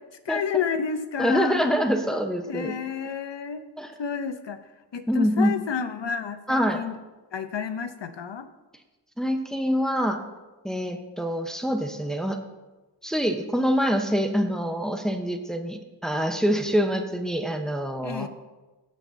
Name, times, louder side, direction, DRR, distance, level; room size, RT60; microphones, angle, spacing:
voice 1, 0.3-1.7 2.5-3.6 4.0-4.6 4.9-7.0 7.3-8.5 18.0-18.3, left 6 dB, 75° left, 10 dB, 0.8 m, -30 dB
voice 2, 1.2-2.7 3.8-3.9 5.1-5.5 6.5-6.8 9.2-10.2 10.6-12.4 13.0-18.3, equal, ahead, 5 dB, 0.9 m, -25 dB
17.5 x 6.0 x 2.7 m, 1.1 s
wide cardioid pair, 45°, 44 cm